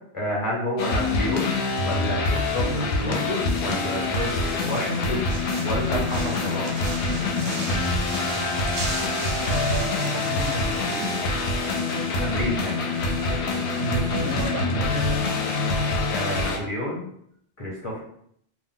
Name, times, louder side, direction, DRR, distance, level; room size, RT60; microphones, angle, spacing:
voice 1, 0.1-5.3 5.6-6.9 12.2-12.8 16.1-17.0 17.6-18.0, left 1 dB, 35° left, -5 dB, 0.7 m, -29 dB
sound 1, 0.8-16.6, left 3 dB, 70° left, 0.8 m, -25 dB
sound 2, 1.9-14.6, right 2 dB, 50° right, 0.5 m, -38 dB
voice 2, 9.5-11.1 13.8-15.3, right 3 dB, 85° right, 3 dB, 0.9 m, -31 dB
2.5 x 2.1 x 3.6 m, 0.69 s
omnidirectional pair, 1.2 m